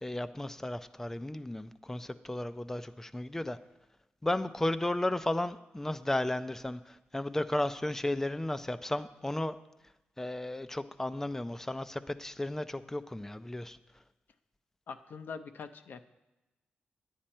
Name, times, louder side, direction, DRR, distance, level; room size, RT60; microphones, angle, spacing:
voice 1, 0.0-3.6 4.2-9.6 10.2-13.8, left 1 dB, 10° left, 12 dB, 0.4 m, -34 dB
voice 2, 14.9-16.0, left 5 dB, 65° left, 8 dB, 0.5 m, -43 dB
10.0 x 8.9 x 4.3 m, 1.0 s
cardioid pair, 110°, 4 cm